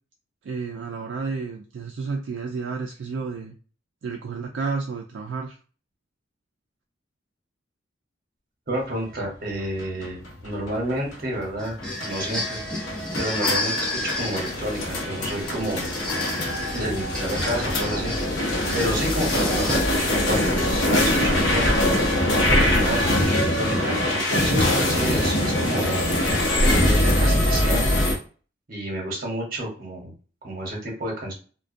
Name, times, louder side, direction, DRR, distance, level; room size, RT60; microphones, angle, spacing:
voice 1, 0.4-3.6 4.0-5.6, right 4 dB, 70° right, 1 dB, 0.3 m, -31 dB
voice 2, 8.7-12.6 13.2-15.9 16.7-18.1 18.7-21.9 22.5-26.0 26.6-28.1 28.7-30.1 30.4-31.3, right 1 dB, 50° right, -1 dB, 1.0 m, -30 dB
sound 1, 9.5-28.1, left 1 dB, 70° left, 0.7 m, -23 dB
sound 2, 11.6-20.2, left 2 dB, 5° left, 0.5 m, -31 dB
2.2 x 2.2 x 2.5 m, 0.38 s
head